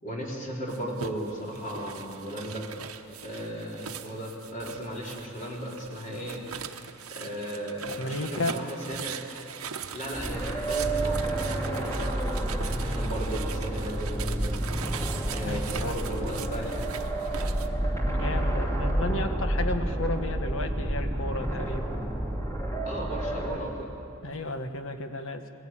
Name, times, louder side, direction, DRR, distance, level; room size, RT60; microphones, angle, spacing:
voice 1, 0.0-2.7 3.1-6.4 6.7-6.8 7.1-9.2 9.9-12.0 12.6-14.6 15.3-16.8 22.8-23.9, right 1 dB, 40° left, -2 dB, 3.8 m, -36 dB
sound 1, 0.7-17.7, right 7 dB, 80° right, 1.0 m, -41 dB
voice 2, 8.0-8.5 15.5-15.9 18.1-21.9 24.2-25.4, left 1 dB, 65° left, 7 dB, 1.3 m, -33 dB
sound 2, 10.1-23.6, right 1 dB, 15° left, 2.5 m, -29 dB
21.0 x 15.5 x 8.8 m, 2.5 s
head